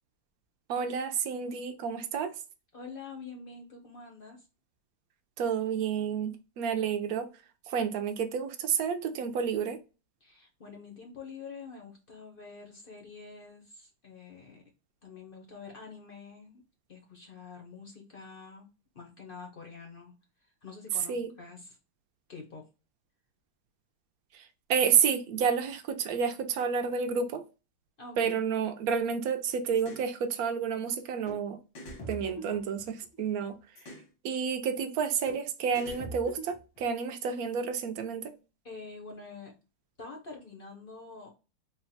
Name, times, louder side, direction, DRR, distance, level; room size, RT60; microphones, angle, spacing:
voice 1, 0.7-2.3 5.4-7.3 7.7-9.8 21.1-21.3 24.3-24.4 24.7-27.4 28.2-31.6 32.1-33.5 34.2-38.3, right 7 dB, 70° right, 0.9 m, -30 dB
voice 2, 2.7-4.4 10.2-14.6 15.0-16.6 16.9-18.7 18.9-20.1 20.6-21.8 22.3-22.6 28.0-28.4 32.4-32.7 38.6-39.5 40.0-41.3, left 4 dB, 50° left, 0.6 m, -46 dB
sound 1, 29.7-30.1 31.3-31.4 31.7-33.2 33.8-34.1 35.3-35.4 35.7-36.8, right 1 dB, 80° left, 1.9 m, -43 dB
3.8 x 2.1 x 4.0 m
omnidirectional pair, 2.0 m